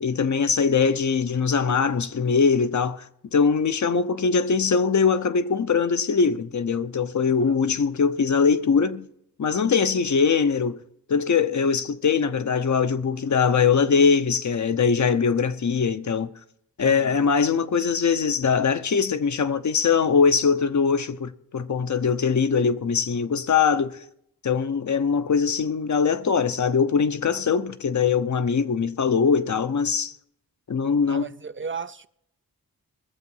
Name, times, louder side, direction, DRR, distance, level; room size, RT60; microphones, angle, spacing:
voice 1, 0.0-3.1 3.3-9.1 9.4-10.8 11.1-16.3 16.8-24.0 24.4-30.1 30.7-31.3, left 5 dB, 50° left, 0.8 m, -22 dB
voice 2, 16.8-17.3 31.1-32.1, right 5 dB, 35° right, 0.4 m, -35 dB
21.5 x 7.3 x 5.5 m
cardioid pair, 45°, 36 cm